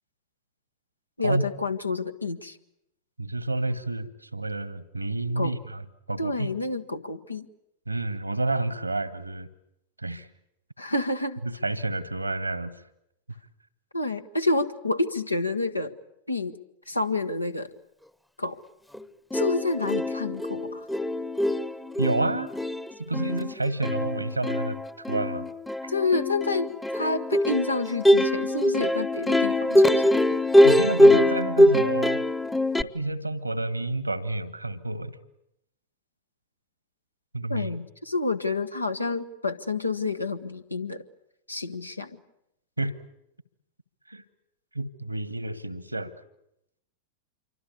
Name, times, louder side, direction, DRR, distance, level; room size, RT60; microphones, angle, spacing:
voice 1, 1.2-2.6 5.3-5.6 6.2-7.5 10.8-11.4 13.9-15.9 16.3-16.5 16.9-17.7 18.4-18.6 19.3-20.9 25.9-30.2 37.5-41.0 41.5-42.2, left 3 dB, 85° left, 9 dB, 1.4 m, -29 dB
voice 2, 3.2-6.5 7.9-9.5 10.0-10.3 11.4-12.7 22.0-22.5 23.0-24.8 25.1-25.5 30.6-32.2 32.8-35.1 37.3-37.7 42.8-43.0 44.1-44.2 44.7-46.1, right 2 dB, 85° right, 16 dB, 1.5 m, -29 dB
Plucked string instrument, 18.9-19.0 19.3-32.8, left 1 dB, 5° left, 0.9 m, -22 dB
27.5 x 24.0 x 8.4 m, 0.82 s
figure-of-eight pair, 90°, 0 cm